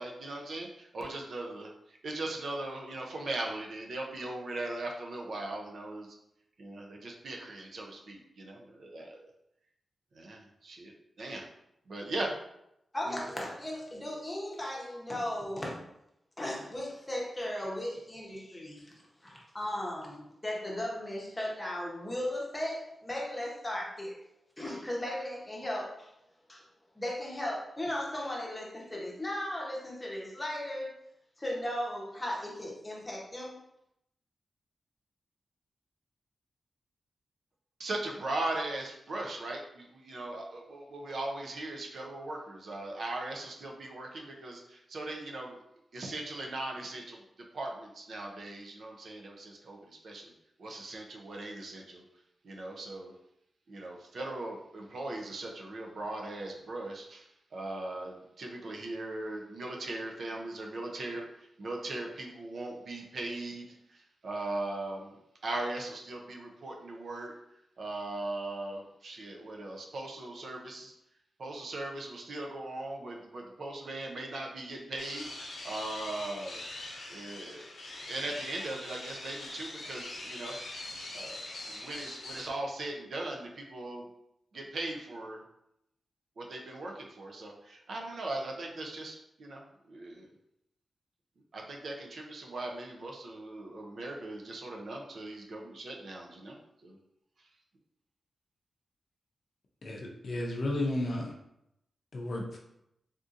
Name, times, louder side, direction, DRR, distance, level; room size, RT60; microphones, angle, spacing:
voice 1, 0.0-6.1 6.6-9.2 10.1-10.9 11.2-11.5 11.9-12.3 13.1-13.2 37.8-45.6 45.9-47.2 47.5-50.3 50.6-52.0 52.4-53.1 53.7-65.1 65.4-67.3 67.8-70.9 71.4-76.6 77.1-77.7 77.9-80.5 81.1-81.4 81.7-84.1 84.5-85.4 86.4-90.3 91.5-96.6 96.8-97.0, right 2 dB, 55° right, 0 dB, 0.5 m, -39 dB
voice 2, 12.9-15.8 16.4-18.9 19.2-24.2 24.6-26.1 26.5-26.6 27.0-30.9 31.4-33.5, left 1 dB, 15° left, -3 dB, 0.7 m, -36 dB
sound 1, 75.0-82.4, left 2 dB, 80° left, 0.8 m, -42 dB
voice 3, 99.8-101.3 102.1-102.6, left 1 dB, 45° left, -1 dB, 0.5 m, -33 dB
3.6 x 2.7 x 2.5 m, 0.81 s
wide cardioid pair, 170°, 0 cm